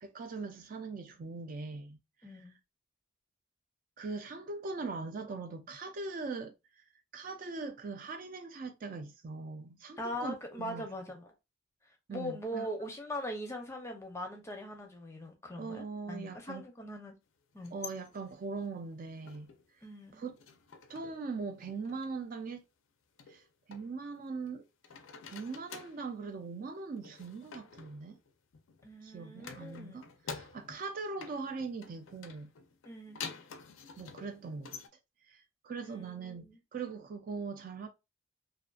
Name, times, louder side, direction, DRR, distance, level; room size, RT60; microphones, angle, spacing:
voice 1, 0.0-2.4 4.0-6.8 7.1-10.8 12.1-12.7 15.6-16.6 17.7-19.5 20.1-20.4 20.9-22.6 23.3-23.4 23.7-24.6 25.2-28.2 29.0-32.5 34.0-34.8 35.3-36.4 36.7-37.9, right 4 dB, 45° right, 0.4 m, -41 dB
voice 2, 2.2-2.6 10.0-11.3 12.1-17.1 17.5-17.7 19.8-20.2 28.8-30.0 32.8-33.2 35.8-36.6, equal, 15° left, 0.5 m, -41 dB
sound 1, 17.5-19.7 20.0-21.3 21.5-22.1 23.2-24.5 24.8-26.1 27.0-28.9 29.4-30.9 31.2-34.9, left 6 dB, 85° left, 0.4 m, -49 dB
2.6 x 2.4 x 2.2 m
head